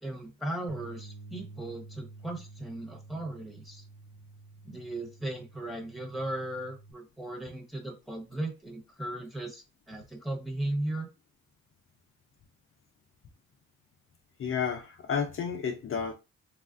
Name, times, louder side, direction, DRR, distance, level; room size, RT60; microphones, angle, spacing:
voice 1, 0.0-3.8 4.6-11.1, right 1 dB, ahead, 1.0 m, -37 dB
Bass guitar, 0.7-6.9, right 3 dB, 50° right, 0.7 m, -50 dB
voice 2, 14.4-16.1, left 6 dB, 45° left, 0.5 m, -31 dB
3.3 x 2.4 x 2.5 m
cardioid pair, 90°, 30 cm